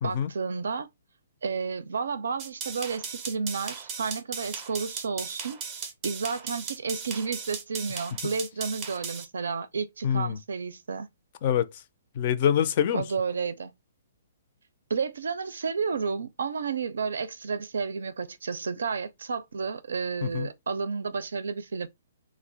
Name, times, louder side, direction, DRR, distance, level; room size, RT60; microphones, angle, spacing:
voice 1, 0.0-0.9 1.4-5.6 6.0-11.1 12.9-13.7 14.9-21.9, right 5 dB, 85° right, 0.4 m, -31 dB
sound 1, 2.4-9.2, right 6 dB, 25° right, 0.5 m, -37 dB
voice 2, 10.0-10.4 11.4-11.8 12.1-13.0 20.2-20.5, left 9 dB, 40° left, 0.4 m, -25 dB
2.3 x 2.0 x 3.8 m
hypercardioid pair, 160°, 0 cm